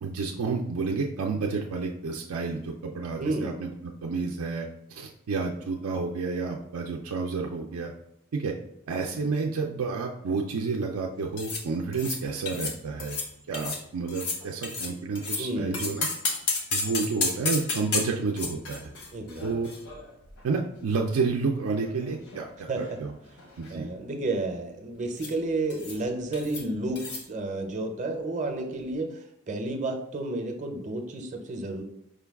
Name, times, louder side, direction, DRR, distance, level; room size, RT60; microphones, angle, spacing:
voice 1, 0.0-7.9 8.3-8.5 8.9-13.2 13.5-16.1 16.7-18.9 19.4-19.7 20.4-23.1 23.6-23.9, right 4 dB, 90° right, 1 dB, 0.4 m, -30 dB
voice 2, 3.2-3.5 15.4-16.0 19.1-19.6 22.7-22.8 23.7-31.8, right 2 dB, 35° right, 4 dB, 0.6 m, -31 dB
sound 1, 11.4-11.6 11.9-12.2 12.5-12.7 13.0-13.3 13.5-13.8 14.1-15.4 15.7-20.4 20.7-20.8 21.5-22.4 22.7-23.0 23.3-23.7 25.2-25.4 25.7-26.0 26.3-26.6 27.0-27.2, left 3 dB, 85° left, 0.9 m, -32 dB
5.1 x 2.3 x 3.4 m, 0.78 s
head